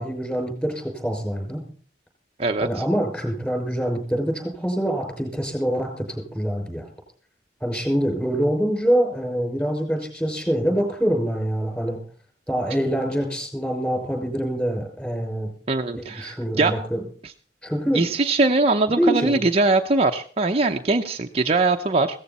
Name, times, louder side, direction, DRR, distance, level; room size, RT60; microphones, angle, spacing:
voice 1, 0.0-1.6 2.6-6.9 7.6-12.0 12.5-15.5 15.9-17.0 17.6-18.1 19.0-19.4, equal, 10° left, 4 dB, 5.8 m, -25 dB
voice 2, 15.7-16.7 17.9-22.2, right 3 dB, 35° right, 4 dB, 0.8 m, -21 dB
16.5 x 14.5 x 4.2 m, 0.44 s
head